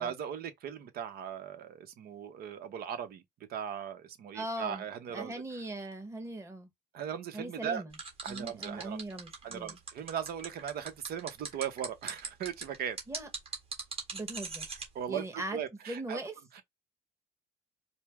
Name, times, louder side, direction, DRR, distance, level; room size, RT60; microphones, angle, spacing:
voice 1, 0.0-3.2 3.5-5.6 6.9-7.8 8.2-9.0 9.4-13.0 14.9-16.2 16.5-16.6, right 8 dB, 65° right, 0.9 m, -38 dB
voice 2, 4.3-4.8 5.1-6.7 7.3-7.9 8.3-9.8 13.1-13.3 14.1-14.7 15.1-15.6 15.9-16.3, right 2 dB, 15° right, 1.2 m, -39 dB
sound 1, 7.9-14.9, right 4 dB, 35° right, 1.7 m, -39 dB
4.4 x 2.1 x 3.5 m
cardioid pair, 110°, 17 cm